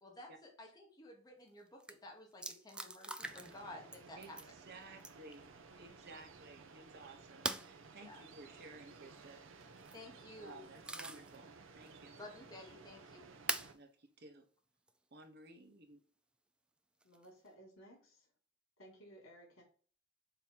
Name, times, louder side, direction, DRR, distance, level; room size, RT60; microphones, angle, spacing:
voice 1, 0.0-4.4 7.9-8.2 9.9-10.6 12.1-13.3, left 1 dB, 20° left, 1 dB, 1.3 m, -53 dB
sound 1, 1.5-1.6 1.8-1.9 2.4-3.6 3.9-4.5 5.0-5.3 7.4-7.7 9.6-10.0 10.5-11.4 11.8-11.9 13.5-13.7 14.9-15.0 17.0-17.5, right 2 dB, 5° right, 0.4 m, -42 dB
sound 2, 3.2-13.7, right 4 dB, 70° right, 0.8 m, -57 dB
voice 2, 4.2-5.5 5.8-9.4 10.4-12.2 13.7-14.4 15.1-16.0, right 2 dB, 55° right, 5 dB, 1.1 m, -56 dB
voice 3, 17.0-18.3 18.8-19.6, right 1 dB, 80° left, -1 dB, 3.5 m, -58 dB
6.9 x 3.0 x 5.5 m, 0.43 s
head